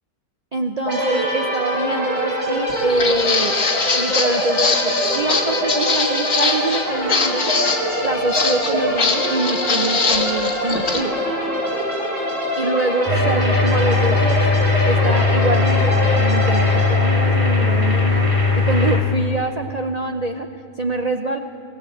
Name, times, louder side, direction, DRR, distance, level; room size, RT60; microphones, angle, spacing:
voice 1, 0.5-3.6 3.9-7.5 8.0-11.1 12.6-18.3 18.6-20.5 20.8-21.4, right 2 dB, 70° right, 5 dB, 0.3 m, -25 dB
sound 1, 0.9-18.5, equal, 45° right, 7.5 m, -24 dB
Walk footsteps, 2.7-11.0, left 4 dB, 45° left, 2.0 m, -22 dB
sound 2, 13.1-19.0, left 3 dB, 20° right, 2.0 m, -18 dB
18.5 x 18.5 x 7.8 m, 2.7 s
omnidirectional pair, 1.8 m